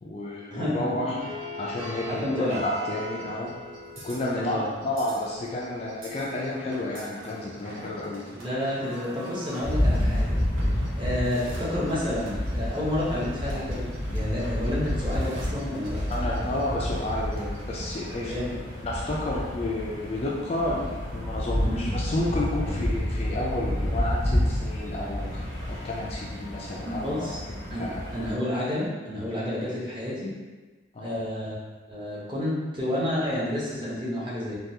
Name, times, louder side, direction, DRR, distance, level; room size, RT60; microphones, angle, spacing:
voice 1, 0.0-1.2 1.6-3.5 4.0-8.4 11.1-11.2 16.1-18.6 18.8-27.3 27.7-28.0 30.9-31.1, left 1 dB, 30° left, -4 dB, 0.3 m, -31 dB
voice 2, 0.5-1.1 2.1-2.6 4.3-4.7 8.4-10.4 11.0-16.6 18.3-18.6 21.6-21.7 26.8-27.4 27.7-30.3 31.0-31.5 31.9-34.5, left 1 dB, 25° right, -8 dB, 0.8 m, -30 dB
sound 1, 1.2-17.9, equal, 85° right, 0.7 m, -43 dB
sound 2, 9.6-28.3, left 1 dB, 55° right, 1.3 m, -29 dB
3.5 x 2.3 x 2.7 m, 1.3 s
head